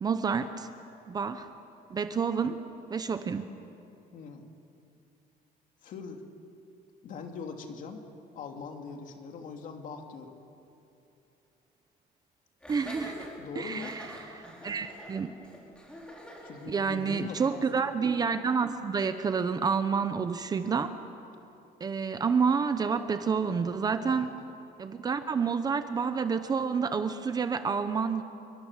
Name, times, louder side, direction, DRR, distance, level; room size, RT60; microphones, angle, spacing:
voice 1, 0.0-0.7 1.1-1.5 1.9-2.6 2.9-3.5 12.7-13.3 13.6-14.0 14.3-15.3 16.7-20.9 21.8-24.3 24.8-28.2, right 5 dB, 25° right, 10 dB, 0.8 m, -29 dB
voice 2, 4.1-4.5 5.8-6.3 7.0-8.0 8.3-10.4 13.4-14.0 16.4-17.8 24.1-24.4, left 5 dB, 50° left, 4 dB, 2.6 m, -42 dB
Laughter, 12.6-17.6, equal, 5° left, 4.9 m, -46 dB
28.0 x 23.0 x 7.4 m, 2.7 s
cardioid pair, 175°, 17 cm